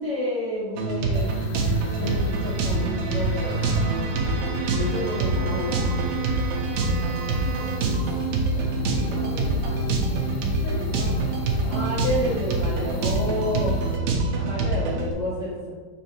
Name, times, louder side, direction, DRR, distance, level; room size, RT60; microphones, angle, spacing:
voice 1, 0.0-1.3 1.9-4.4 4.7-5.8 8.5-9.3 11.6-15.7, equal, 30° left, -11 dB, 1.9 m, -30 dB
sound 1, 0.8-15.1, right 2 dB, 70° right, 1.9 m, -25 dB
sound 2, 1.1-14.0, left 4 dB, 90° left, 2.3 m, -41 dB
Bowed string instrument, 1.6-8.1, right 4 dB, 90° right, 1.3 m, -38 dB
voice 2, 5.3-6.2 8.8-12.0 13.1-13.6, left 2 dB, 50° left, -14 dB, 3.3 m, -41 dB
7.9 x 5.8 x 3.0 m, 1.4 s
omnidirectional pair, 4.0 m